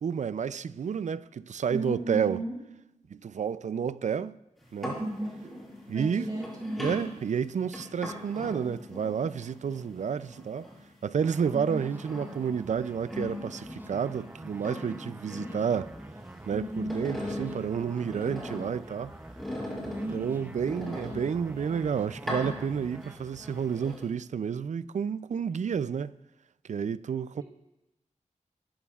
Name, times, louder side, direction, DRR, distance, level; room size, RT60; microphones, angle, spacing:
voice 1, 0.0-2.4 3.1-4.4 4.7-5.0 5.9-6.3 6.8-10.7 11.0-15.9 16.5-19.1 20.1-26.1 26.6-27.4, right 7 dB, 70° right, 0.4 m, -30 dB
voice 2, 1.7-2.6 5.0-5.5 5.9-6.9 11.5-11.8 16.5-17.0 19.9-20.3, right 2 dB, 35° right, 5.8 m, -34 dB
sound 1, 4.6-11.0 11.4-14.3 14.6-16.4 16.7-18.8 19.4-21.6 22.1-23.1 23.4-24.1, left 1 dB, ahead, 5.3 m, -40 dB
sound 2, 11.2-24.0, right 1 dB, 15° right, 0.7 m, -46 dB
24.0 x 14.0 x 2.4 m
wide cardioid pair, 120°, 13 cm